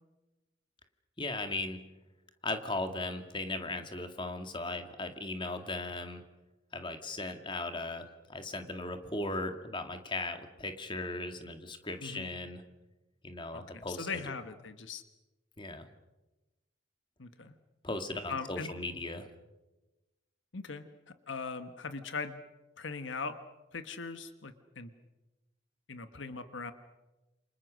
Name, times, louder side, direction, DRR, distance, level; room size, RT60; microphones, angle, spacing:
voice 1, 1.2-1.8 2.4-6.2 6.7-12.6 13.2-14.2 15.6-15.9 17.8-19.3, left 2 dB, 25° left, 7 dB, 2.1 m, -37 dB
voice 2, 12.0-12.3 13.5-15.0 17.2-17.5 18.3-18.7 20.5-20.8 21.3-22.4 22.8-23.4 23.7-24.9 25.9-26.7, left 4 dB, 70° left, 9 dB, 1.4 m, -40 dB
29.0 x 26.0 x 6.4 m, 1.1 s
head